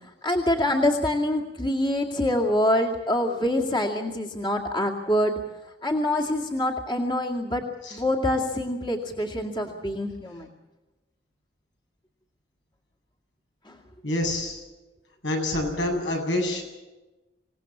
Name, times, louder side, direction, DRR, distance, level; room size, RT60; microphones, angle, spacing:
voice 1, 0.2-5.4 5.8-7.6 7.9-10.5 13.7-13.8, left 1 dB, 25° left, 0 dB, 2.3 m, -25 dB
voice 2, 14.0-14.6 15.2-16.6, left 1 dB, 80° left, 2 dB, 7.9 m, -27 dB
26.5 x 18.0 x 7.4 m, 1.1 s
head